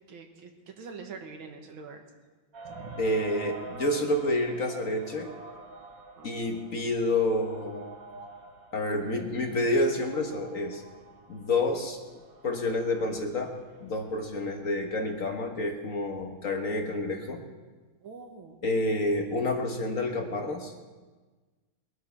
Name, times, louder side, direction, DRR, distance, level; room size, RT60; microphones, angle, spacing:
voice 1, 0.1-2.0 2.6-3.0 6.2-6.3 18.0-18.6, right 5 dB, 80° right, 4 dB, 2.2 m, -44 dB
sound 1, 2.5-14.2, right 3 dB, 45° right, 1.7 m, -47 dB
voice 2, 3.0-5.3 6.2-7.9 8.7-10.8 11.3-12.0 12.4-13.5 13.8-17.4 18.6-20.7, left 1 dB, 45° left, 3 dB, 1.5 m, -29 dB
21.5 x 11.5 x 4.6 m, 1.3 s
omnidirectional pair, 2.2 m